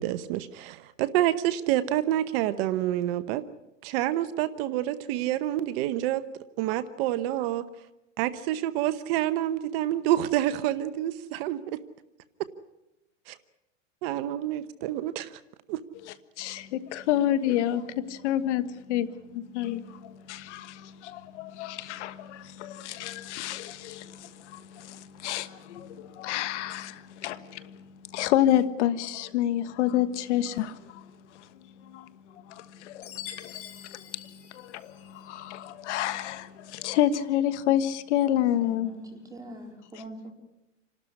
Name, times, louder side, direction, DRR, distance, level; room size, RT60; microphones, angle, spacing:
voice 1, 0.0-3.4 3.8-6.2 6.6-7.6 8.2-11.6 13.3-13.4 14.0-15.4 15.7-15.8, right 13 dB, 50° right, 1.0 m, -28 dB
voice 2, 16.1-19.1 19.3-27.8 28.1-31.0 31.9-32.0 32.5-33.6 33.9-34.0 34.5-38.9, left 12 dB, 65° left, 1.4 m, -29 dB
Chime, 33.0-35.3, left 11 dB, 40° left, 3.8 m, -44 dB
voice 3, 38.6-40.3, right 1 dB, 10° right, 4.0 m, -42 dB
28.0 x 12.5 x 9.8 m
supercardioid pair, 130°, 38 cm